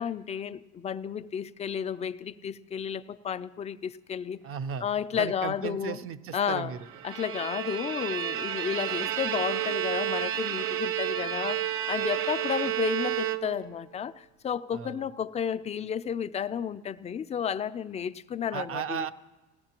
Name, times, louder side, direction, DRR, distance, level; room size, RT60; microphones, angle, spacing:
voice 1, 0.0-4.4 4.8-6.0 6.3-6.7 7.0-19.1, left 8 dB, 20° left, 11 dB, 0.3 m, -32 dB
voice 2, 4.4-4.9 5.1-6.8 14.7-15.1 18.5-19.1, right 8 dB, 40° right, 14 dB, 0.6 m, -35 dB
Bowed string instrument, 6.9-13.8, right 12 dB, 80° right, 0.7 m, -31 dB
19.0 x 15.0 x 2.9 m, 1.2 s
supercardioid pair, 100°, 36 cm